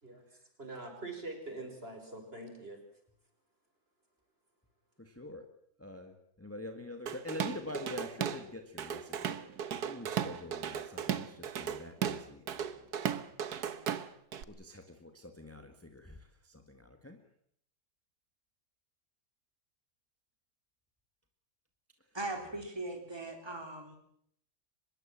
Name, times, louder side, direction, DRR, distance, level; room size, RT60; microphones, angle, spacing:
voice 1, 0.0-2.8, right 2 dB, 35° right, 4 dB, 6.1 m, -44 dB
voice 2, 5.0-5.5 5.8-9.4 9.8-12.9 14.5-17.2, left 2 dB, 10° left, 5 dB, 1.8 m, -46 dB
Drum kit / Drum, 7.1-8.4 8.8-14.4, right 8 dB, 75° right, 1.7 m, -36 dB
voice 3, 22.1-24.0, right 2 dB, 15° right, 3 dB, 3.8 m, -39 dB
24.5 x 21.5 x 7.6 m, 0.69 s
omnidirectional pair, 1.7 m